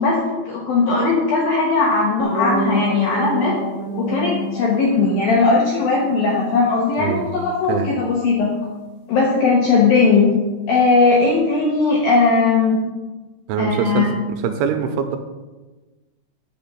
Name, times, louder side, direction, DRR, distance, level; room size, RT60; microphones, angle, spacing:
voice 1, 0.0-3.5 4.0-8.5 9.1-10.3 10.7-12.8 13.6-14.1, left 4 dB, 75° left, -3 dB, 2.2 m, -18 dB
sound 1, 2.2-7.1, equal, 45° left, 3.7 m, -28 dB
voice 2, 13.5-15.2, right 7 dB, 80° right, 6 dB, 3.1 m, -23 dB
9.4 x 5.1 x 7.2 m, 1.2 s
omnidirectional pair, 5.9 m